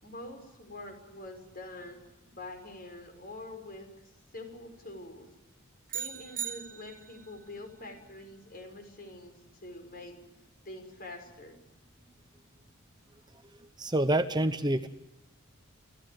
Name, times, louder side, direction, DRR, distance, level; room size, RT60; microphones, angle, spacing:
voice 1, 0.0-2.0 2.3-3.9 4.3-5.3 5.9-9.3 9.6-10.2 10.7-11.6, left 2 dB, 45° left, 6 dB, 5.6 m, -45 dB
sound 1, 5.9-7.3, right 8 dB, 40° right, 1.8 m, -38 dB
voice 2, 13.8-14.9, right 1 dB, 20° right, 10 dB, 0.9 m, -27 dB
29.0 x 15.0 x 7.9 m, 1.0 s
head